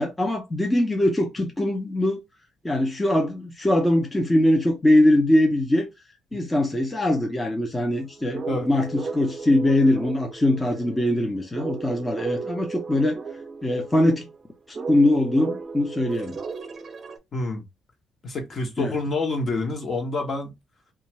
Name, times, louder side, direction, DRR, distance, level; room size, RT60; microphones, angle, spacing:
voice 1, 0.0-2.2 2.6-5.9 6.3-13.2 13.6-14.3 14.9-16.4 18.8-18.9, left 1 dB, 15° left, 0.6 m, -22 dB
sound 1, 7.9-17.2, right 4 dB, 45° right, 0.5 m, -35 dB
voice 2, 17.3-17.6 18.2-20.5, left 2 dB, 50° left, 0.9 m, -27 dB
2.5 x 2.3 x 3.0 m
cardioid pair, 90°, 0 cm